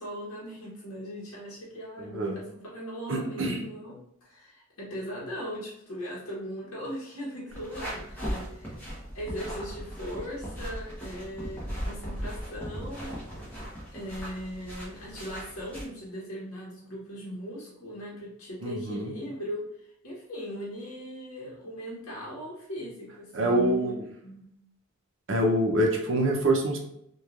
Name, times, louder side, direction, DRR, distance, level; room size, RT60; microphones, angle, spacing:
voice 1, 0.0-8.8 9.1-13.2 13.9-24.5, equal, 85° left, -6 dB, 0.8 m, -39 dB
voice 2, 2.0-2.4 3.1-3.6 18.6-19.1 23.3-24.0 25.3-26.8, right 1 dB, 60° right, 1 dB, 0.6 m, -25 dB
sound 1, 7.5-15.8, equal, 10° left, 0.8 m, -38 dB
3.0 x 2.2 x 2.4 m, 0.75 s
head